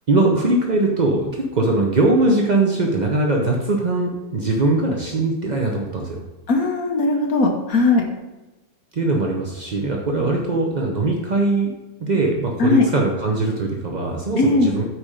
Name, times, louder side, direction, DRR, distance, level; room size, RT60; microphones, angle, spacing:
voice 1, 0.1-6.2 8.9-11.7 12.0-14.9, right 2 dB, 55° right, 0 dB, 0.4 m, -21 dB
voice 2, 6.5-8.1 12.6-12.9 14.4-14.7, left 3 dB, 55° left, 2 dB, 1.2 m, -18 dB
9.4 x 4.4 x 5.0 m, 1.1 s
omnidirectional pair, 2.1 m